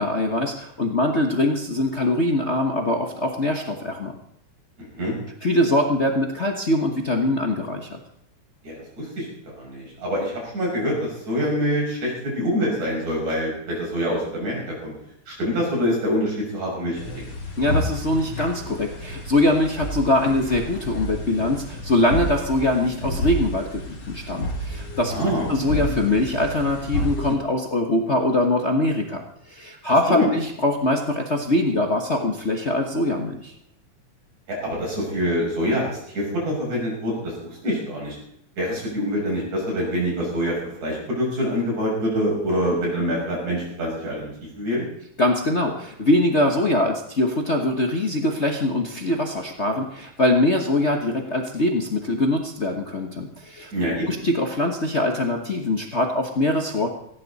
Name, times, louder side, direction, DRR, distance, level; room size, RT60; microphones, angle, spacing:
voice 1, 0.0-4.2 5.4-8.0 17.6-25.1 25.5-33.5 45.2-53.7 54.1-56.9, left 1 dB, 70° left, 2 dB, 0.6 m, -23 dB
voice 2, 4.8-5.1 8.6-14.9 15.3-17.3 25.1-25.5 30.1-30.3 34.5-38.2 38.6-44.9 53.7-54.1, equal, 70° right, -3 dB, 7.9 m, -25 dB
sound 1, 17.0-27.4, equal, 40° left, 2.6 m, -30 dB
17.5 x 16.0 x 4.1 m, 0.77 s
omnidirectional pair, 3.4 m